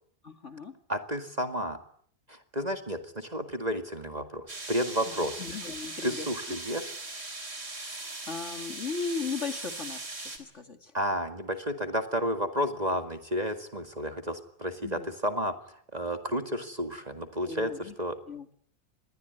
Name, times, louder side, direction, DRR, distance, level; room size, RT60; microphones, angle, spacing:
voice 1, 0.2-0.7 5.1-6.6 7.9-10.9 14.8-15.1 17.4-17.9 18.3-18.5, left 5 dB, 45° left, 7 dB, 2.5 m, -37 dB
voice 2, 0.9-1.8 2.3-5.4 6.0-6.9 10.9-18.2, equal, 25° right, 7 dB, 2.0 m, -32 dB
sound 1, 4.5-10.4, right 2 dB, 50° right, 4.3 m, -39 dB
27.0 x 21.5 x 9.6 m, 0.63 s
omnidirectional pair, 1.7 m